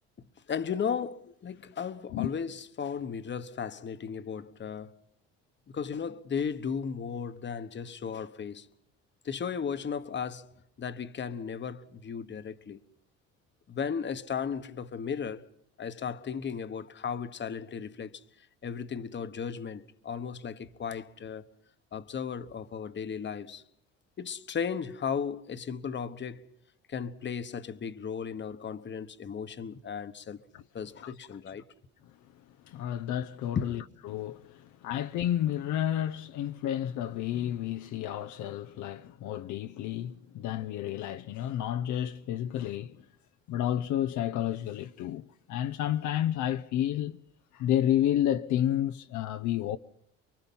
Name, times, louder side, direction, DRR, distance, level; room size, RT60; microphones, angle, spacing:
voice 1, 0.5-5.0 5.7-8.7 9.2-10.5 10.8-12.8 13.7-15.5 15.8-18.2 18.6-21.5 21.9-23.6 24.2-26.5 26.9-30.4 30.7-31.6 33.5-33.7, left 6 dB, 35° left, 1.2 m, -35 dB
voice 2, 32.7-43.0 43.5-47.2 47.5-49.8, left 11 dB, 70° left, 0.8 m, -31 dB
24.5 x 23.5 x 5.5 m
supercardioid pair, 85°, 31 cm